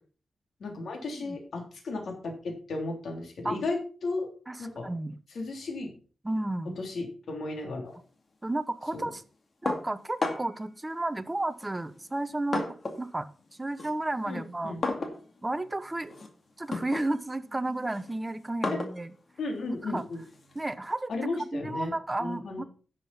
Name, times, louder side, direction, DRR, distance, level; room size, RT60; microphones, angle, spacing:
voice 1, 0.6-2.3 2.7-4.3 4.6-4.9 5.3-5.9 6.8-8.0 8.9-9.1 14.3-14.8 19.4-20.2 21.1-21.9 22.2-22.7, left 3 dB, 80° left, 2 dB, 3.2 m, -34 dB
voice 2, 4.5-5.2 6.2-6.8 8.4-9.2 9.6-12.6 13.0-14.7 15.4-16.1 16.6-19.1 19.8-20.0 20.5-21.1 21.5-22.6, right 2 dB, 20° right, 11 dB, 0.9 m, -32 dB
sound 1, 9.7-10.7 11.6-13.1 13.4-20.7, left 3 dB, 50° left, 2.1 m, -36 dB
11.0 x 7.6 x 4.3 m, 0.38 s
wide cardioid pair, 95°, 0 cm